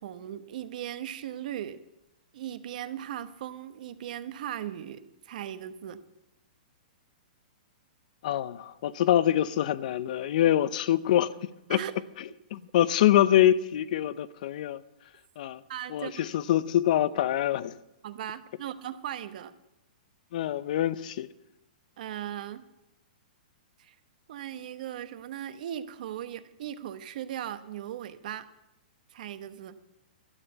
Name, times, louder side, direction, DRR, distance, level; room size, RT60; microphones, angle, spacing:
voice 1, 0.0-1.8 2.3-6.0 11.7-11.9 15.7-16.3 18.0-19.5 22.0-22.6 23.8-23.9 24.3-28.5 29.1-29.8, right 11 dB, 60° right, 1.0 m, -38 dB
voice 2, 8.2-11.8 12.5-14.8 15.4-15.6 15.9-17.8 20.3-21.3, left 12 dB, 55° left, 0.6 m, -25 dB
12.5 x 9.2 x 7.9 m
hypercardioid pair, 145°, 5 cm